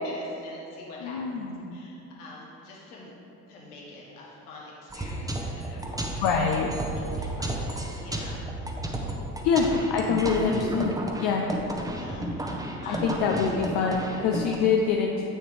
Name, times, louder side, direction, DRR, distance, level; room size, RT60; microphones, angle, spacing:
voice 1, 0.0-1.4 1.7-3.1 3.5-6.4 6.9-8.4 11.9-13.2, left 2 dB, 80° left, -5 dB, 1.6 m, -45 dB
voice 2, 1.0-1.8 6.2-6.7 9.4-11.4 12.9-15.3, left 5 dB, 60° left, 0 dB, 0.7 m, -25 dB
sound 1, 4.9-14.6, right 1 dB, 10° right, 0.9 m, -33 dB
7.7 x 6.4 x 3.3 m, 3.0 s
hypercardioid pair, 60°, 45 cm